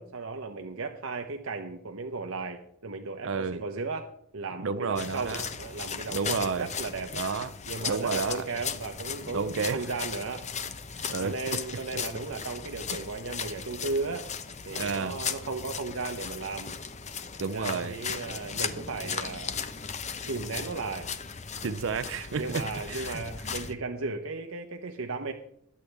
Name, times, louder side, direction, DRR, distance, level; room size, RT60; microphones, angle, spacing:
voice 1, 0.0-7.1 7.7-10.5 11.2-14.3 14.7-16.7 17.4-19.6 20.3-21.1 22.3-25.3, right 3 dB, 80° right, 1.0 m, -35 dB
voice 2, 3.2-3.6 4.6-5.5 6.1-6.7 7.1-7.5 7.9-8.4 9.3-9.8 11.0-11.3 14.8-15.2 17.4-18.0 21.6-23.2, right 5 dB, 65° right, 0.5 m, -31 dB
sound 1, 5.0-23.7, left 6 dB, 35° left, 0.9 m, -37 dB
21.5 x 8.6 x 3.4 m
head